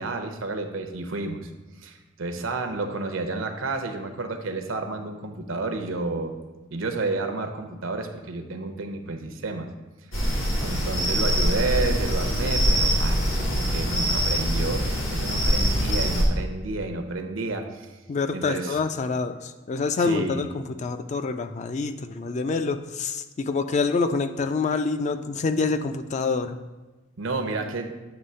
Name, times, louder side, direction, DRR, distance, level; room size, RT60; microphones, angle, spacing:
voice 1, 0.0-1.5 1.8-6.4 6.7-9.7 10.6-18.0 18.3-18.8 20.0-20.5 27.2-27.9, right 3 dB, 85° right, 6 dB, 0.7 m, -30 dB
sound 1, 10.1-16.2, equal, 85° left, 1.7 m, -24 dB
voice 2, 18.1-26.6, left 4 dB, 35° left, 10 dB, 0.3 m, -26 dB
7.9 x 3.2 x 5.5 m, 1.2 s
head